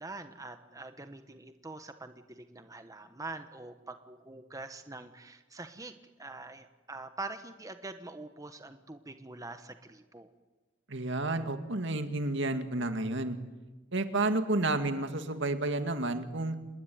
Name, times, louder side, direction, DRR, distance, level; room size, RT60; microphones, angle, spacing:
voice 1, 0.0-5.9 6.2-10.3, right 2 dB, 20° right, 8 dB, 1.2 m, -44 dB
voice 2, 10.9-13.4 13.9-16.6, right 2 dB, 65° right, 8 dB, 2.2 m, -31 dB
27.0 x 20.5 x 9.5 m, 1.2 s
head